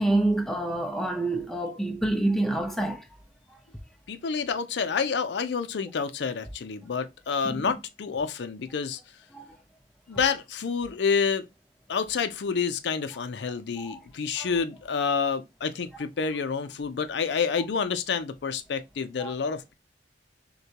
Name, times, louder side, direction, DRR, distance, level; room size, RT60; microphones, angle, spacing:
voice 1, 0.0-3.0 7.4-7.6 9.3-9.5 13.8-14.0 14.4-14.5 19.2-19.3, right 2 dB, ahead, 0.6 m, -27 dB
voice 2, 4.1-9.0 10.1-11.5 11.9-19.7, left 5 dB, 70° left, 0.5 m, -28 dB
6.4 x 2.2 x 2.8 m
head